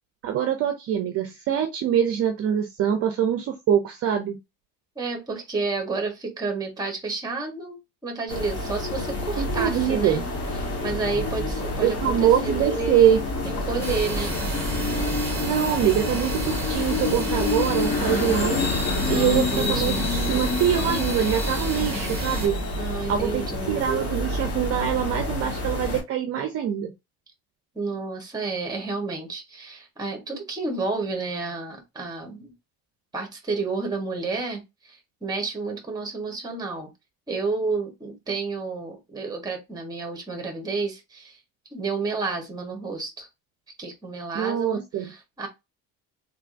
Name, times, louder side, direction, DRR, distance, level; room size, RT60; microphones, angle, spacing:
voice 1, 0.2-4.4 9.4-10.2 11.8-13.2 15.4-18.6 19.1-22.6 23.1-23.4 23.7-26.9 44.3-45.1, right 9 dB, 40° right, 0.5 m, -24 dB
voice 2, 5.0-10.2 10.6-14.4 19.0-20.0 22.8-23.8 27.7-32.5 33.1-36.9 37.3-41.4 41.7-43.3 43.8-45.5, right 4 dB, 10° right, 1.0 m, -31 dB
sound 1, 8.3-26.0, left 2 dB, 45° left, 1.3 m, -28 dB
sound 2, 13.8-22.5, right 2 dB, 5° left, 1.4 m, -33 dB
3.4 x 3.4 x 2.5 m
cardioid pair, 175°, 36 cm